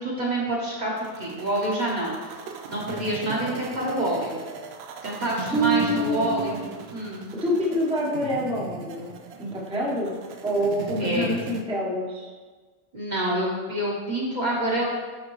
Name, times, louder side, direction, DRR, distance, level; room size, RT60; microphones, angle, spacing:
voice 1, 0.0-2.4 2.7-4.4 5.0-6.6 6.9-7.2 11.0-11.3 12.9-14.8, right 1 dB, 40° right, -4 dB, 1.1 m, -27 dB
sound 1, 1.0-11.6, right 5 dB, 65° right, 0.8 m, -39 dB
voice 2, 5.5-6.7 7.4-12.3, equal, 5° right, -4 dB, 0.8 m, -26 dB
9.5 x 3.6 x 3.1 m, 1.4 s
omnidirectional pair, 1.2 m